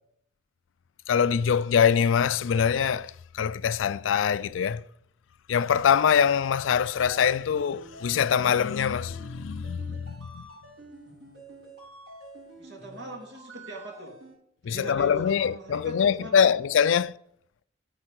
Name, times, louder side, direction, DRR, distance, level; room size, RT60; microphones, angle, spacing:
voice 1, 1.1-4.8 5.5-10.4 14.6-17.1, left 7 dB, 90° left, 0.4 m, -24 dB
sound 1, 7.5-14.3, right 1 dB, 90° right, 5.4 m, -48 dB
voice 2, 12.6-14.1 14.7-16.5, right 1 dB, 70° right, 3.2 m, -41 dB
10.0 x 5.5 x 7.7 m
head